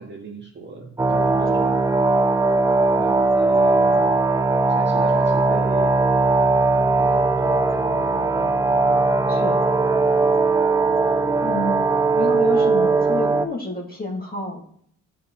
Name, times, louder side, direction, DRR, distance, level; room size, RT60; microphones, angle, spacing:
voice 1, 0.0-1.9 3.0-4.1 4.7-5.9 6.7-8.5, right 4 dB, 35° right, -1 dB, 1.9 m, -37 dB
sound 1, 1.0-13.5, right 3 dB, 10° right, 0.5 m, -19 dB
voice 2, 11.4-14.6, left 1 dB, 30° left, -1 dB, 2.1 m, -29 dB
12.5 x 4.7 x 3.1 m, 0.65 s
cardioid pair, 90°, 30 cm